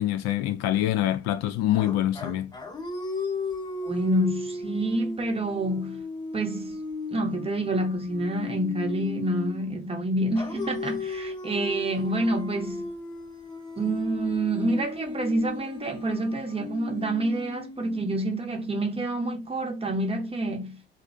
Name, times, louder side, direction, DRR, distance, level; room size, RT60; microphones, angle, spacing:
voice 1, 0.0-2.5, left 13 dB, 55° left, 0.4 m, -25 dB
sound 1, 1.7-9.8 10.4-18.4, left 3 dB, 15° left, 0.8 m, -36 dB
voice 2, 3.8-6.0 6.3-6.8 7.1-12.9 13.8-20.8, right 1 dB, 20° right, 0.7 m, -28 dB
2.4 x 2.0 x 2.6 m
hypercardioid pair, 65°, 31 cm